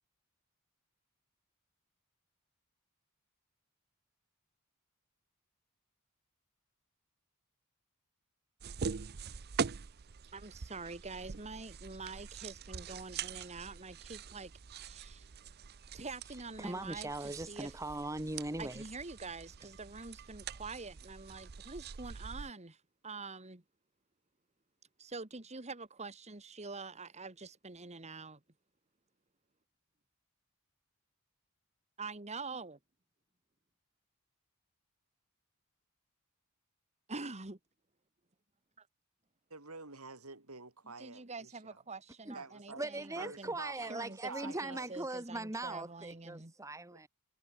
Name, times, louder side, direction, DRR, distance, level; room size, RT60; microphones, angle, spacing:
sound 1, 8.6-22.5, right 6 dB, 45° right, 0.6 m, -44 dB
voice 1, 10.3-15.3 15.9-17.7 18.6-23.6 25.0-28.4 32.0-32.8 37.1-37.6 38.8-38.9 41.0-43.5 43.9-44.2 44.4-46.5, right 3 dB, 30° right, 1.9 m, -46 dB
voice 2, 16.6-18.8 20.4-20.5 42.2-42.4 42.8-47.1, right 2 dB, 15° right, 1.5 m, -40 dB
voice 3, 39.5-41.8 42.3-42.8 43.2-44.9 46.9-47.0, right 3 dB, 85° right, 7.7 m, -49 dB
head